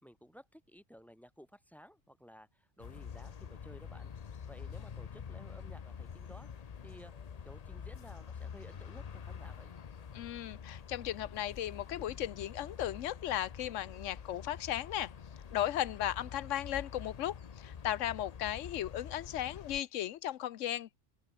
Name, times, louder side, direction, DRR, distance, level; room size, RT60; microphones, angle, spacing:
voice 1, 0.0-4.1 4.5-6.5 6.8-9.7, equal, ahead, 3.7 m, -55 dB
sound 1, 2.8-19.8, left 7 dB, 40° left, 0.6 m, -47 dB
voice 2, 10.1-15.1 15.5-21.0, left 12 dB, 80° left, 1.0 m, -36 dB
open air
omnidirectional pair, 1.3 m